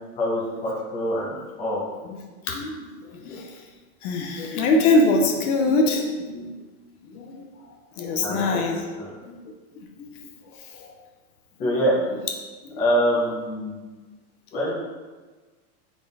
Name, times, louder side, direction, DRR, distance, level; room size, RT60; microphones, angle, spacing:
voice 1, 0.2-1.3 1.6-1.8 8.2-8.6 9.0-9.1 11.6-11.9 12.8-13.9 14.5-14.7, equal, 15° left, -6 dB, 0.6 m, -24 dB
voice 2, 2.5-3.5 4.0-6.5 7.0-7.5 8.0-8.9 9.3-9.4 9.8-10.1 10.7-10.9 11.6-11.8 12.6-12.8, left 2 dB, 75° left, 2 dB, 0.8 m, -24 dB
3.6 x 2.3 x 4.0 m, 1.3 s
supercardioid pair, 155°, 45 cm